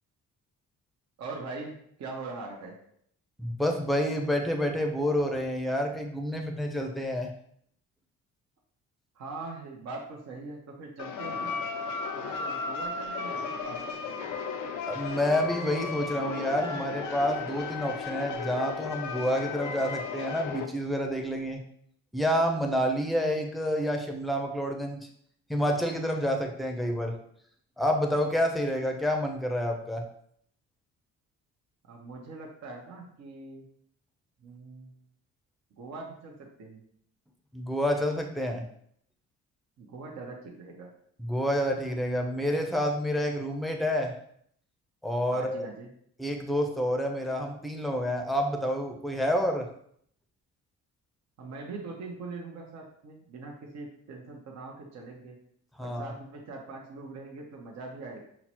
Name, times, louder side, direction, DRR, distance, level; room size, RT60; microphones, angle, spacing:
voice 1, 1.2-2.8 9.1-11.6 12.1-14.3 31.9-33.7 34.4-34.9 35.7-36.8 39.8-40.9 45.3-45.9 51.4-55.4 55.8-58.2, right 3 dB, 60° right, 0 dB, 0.8 m, -42 dB
voice 2, 3.4-7.3 14.9-21.6 22.1-25.0 25.5-27.2 27.8-30.0 37.5-38.6 41.2-44.1 45.0-45.7 46.2-49.7 55.8-56.1, equal, ahead, 3 dB, 0.6 m, -28 dB
sound 1, 11.0-20.7, left 5 dB, 85° left, 0.5 m, -35 dB
5.8 x 2.0 x 2.9 m, 0.67 s
cardioid pair, 90°, 30 cm